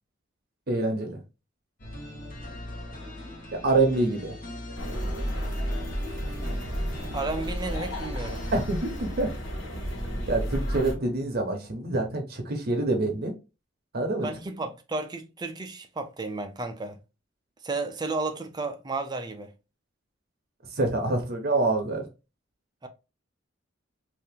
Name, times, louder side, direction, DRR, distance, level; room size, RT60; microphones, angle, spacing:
voice 1, 0.7-1.2 3.6-4.3 8.5-9.3 10.3-13.3 13.9-14.3 20.7-22.0, right 2 dB, 55° right, 0.8 m, -26 dB
sound 1, 1.8-11.6, left 1 dB, 50° left, 1.1 m, -41 dB
sound 2, 4.8-10.9, equal, 80° left, 1.4 m, -32 dB
voice 2, 7.1-8.4 14.2-17.0 17.6-19.5 22.8-22.9, right 3 dB, 20° right, 0.5 m, -33 dB
2.7 x 2.6 x 3.6 m
head